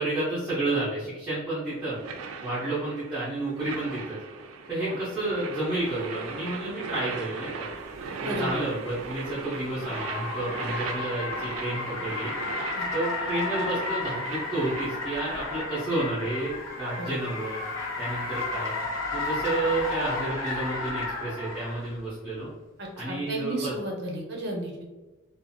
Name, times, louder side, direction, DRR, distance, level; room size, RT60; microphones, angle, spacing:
voice 1, 0.0-2.0 2.4-4.2 4.7-7.7 8.2-12.3 12.9-17.6 18.0-18.7 19.1-22.5 23.0-23.7, right 2 dB, 5° right, -11 dB, 0.7 m, -30 dB
sound 1, 1.7-15.4, right 5 dB, 80° right, 0.3 m, -38 dB
Car, 8.0-21.9, left 3 dB, 90° left, 1.3 m, -33 dB
voice 2, 22.8-24.8, right 1 dB, 55° right, -1 dB, 0.7 m, -33 dB
2.5 x 2.4 x 2.6 m, 1.2 s
head